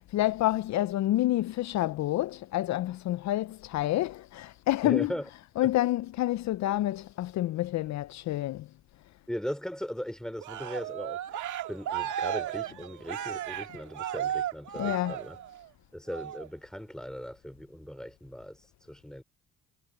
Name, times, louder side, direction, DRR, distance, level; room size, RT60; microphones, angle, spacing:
voice 1, 0.1-5.1 5.6-8.7 14.8-15.2, left 15 dB, 65° left, 0.5 m, -28 dB
voice 2, 4.8-5.2 5.6-5.7 9.3-11.4 11.7-15.4 15.9-19.2, equal, ahead, 2.8 m, -38 dB
Cheering, 10.4-15.6 16.1-16.5, right 10 dB, 75° right, 1.8 m, -35 dB
cardioid pair, 90°, 30 cm